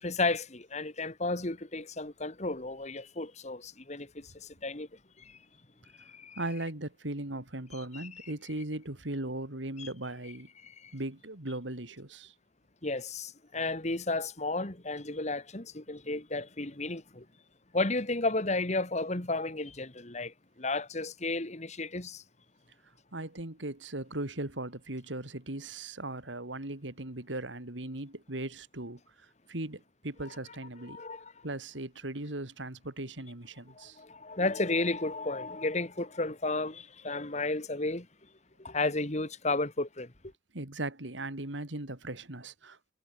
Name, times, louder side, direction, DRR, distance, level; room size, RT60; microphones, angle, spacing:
voice 1, 0.0-4.9 5.2-5.4 6.0-6.4 7.9-8.1 9.8-9.9 10.6-10.9 12.8-17.3 17.7-22.2 30.9-31.3 33.7-38.1 38.6-40.1, left 2 dB, 40° left, 2.1 m, -33 dB
voice 2, 6.3-10.5 10.9-12.3 23.1-31.0 31.4-34.0 40.5-42.9, right 2 dB, 90° right, 3.2 m, -38 dB
head